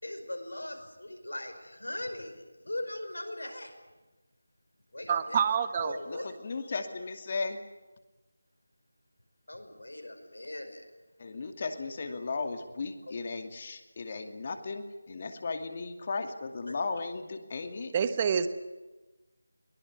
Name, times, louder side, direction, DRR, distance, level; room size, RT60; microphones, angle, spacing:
voice 1, 0.0-3.7 4.9-5.4 5.8-6.3 9.5-10.8 13.1-13.2 16.7-16.8, left 1 dB, 80° left, 6 dB, 5.4 m, -39 dB
voice 2, 5.1-6.0 17.9-18.5, right 7 dB, 25° right, 12 dB, 1.2 m, -27 dB
voice 3, 6.1-7.6 11.2-17.9, left 4 dB, 35° left, 7 dB, 2.4 m, -36 dB
23.0 x 19.0 x 9.5 m, 1.2 s
figure-of-eight pair, 165°, 0 cm